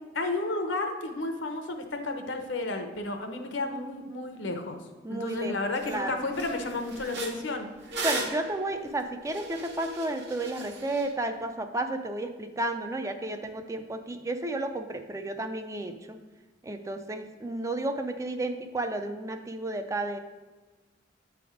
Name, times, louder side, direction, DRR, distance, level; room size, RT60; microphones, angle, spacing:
voice 1, 0.1-4.8 5.1-7.7, left 2 dB, 75° left, 6 dB, 0.8 m, -32 dB
voice 2, 5.0-6.2 8.0-16.2 16.6-20.2, right 2 dB, 15° right, 7 dB, 0.4 m, -32 dB
sound 1, 5.3-5.4 5.8-6.0 6.3-11.1, right 2 dB, 60° right, 1.1 m, -37 dB
8.6 x 3.5 x 4.8 m, 1.3 s
head